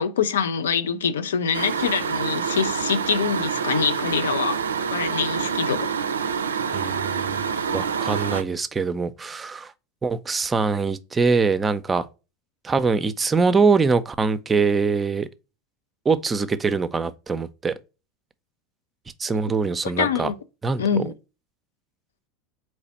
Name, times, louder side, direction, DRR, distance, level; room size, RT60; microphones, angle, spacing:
voice 1, 0.0-4.6 4.9-5.9 20.0-20.4 20.8-21.1, left 6 dB, 80° left, 0.4 m, -24 dB
sound 1, 1.5-8.4, right 6 dB, 90° right, 0.3 m, -27 dB
voice 2, 6.7-7.4 7.7-9.7 10.0-12.1 12.6-15.3 16.1-17.7 19.2-20.3 20.6-21.1, right 4 dB, 20° right, 0.5 m, -23 dB
4.1 x 3.1 x 4.1 m
hypercardioid pair, 85°, 0 cm